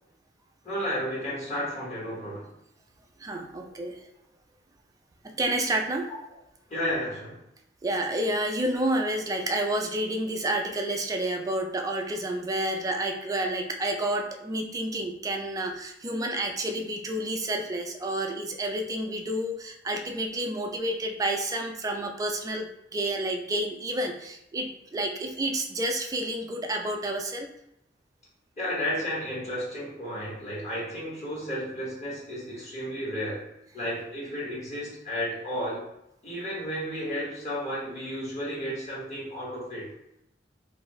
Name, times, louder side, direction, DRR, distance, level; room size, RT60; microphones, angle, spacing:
voice 1, 0.6-2.5 6.1-6.2 6.7-7.4 28.6-33.4 33.7-35.8 36.2-39.9, equal, 40° left, -6 dB, 1.1 m, -32 dB
voice 2, 3.2-4.0 5.2-6.1 7.8-27.5, right 1 dB, 20° right, 3 dB, 0.3 m, -30 dB
2.6 x 2.3 x 3.0 m, 0.81 s
head